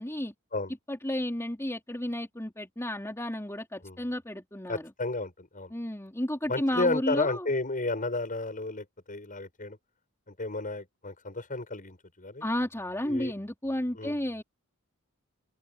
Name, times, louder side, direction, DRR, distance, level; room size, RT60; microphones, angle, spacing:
voice 1, 0.0-0.3 0.9-4.9 5.7-7.5 12.4-14.4, left 1 dB, 10° left, 3.7 m, -32 dB
voice 2, 4.7-5.7 6.5-9.8 10.3-12.4 13.0-13.3 13.9-14.2, left 2 dB, 40° left, 6.8 m, -32 dB
open air
head